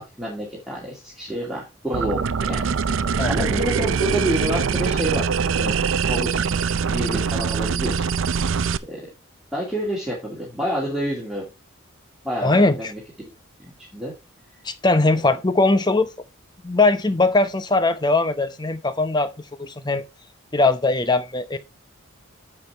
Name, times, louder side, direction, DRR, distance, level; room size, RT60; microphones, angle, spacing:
voice 1, 0.0-2.2 2.5-2.8 3.3-5.8 6.0-6.5 6.9-8.2 8.8-9.0 9.5-11.4 12.2-13.0 13.6-14.1, equal, ahead, 2.4 m, -28 dB
sound 1, 1.9-8.8, right 6 dB, 65° right, 0.5 m, -23 dB
voice 2, 3.2-3.6 12.4-12.9 14.6-16.1 16.6-19.3 19.6-20.0 20.5-21.6, left 2 dB, 20° left, 0.7 m, -20 dB
9.9 x 7.2 x 3.4 m
head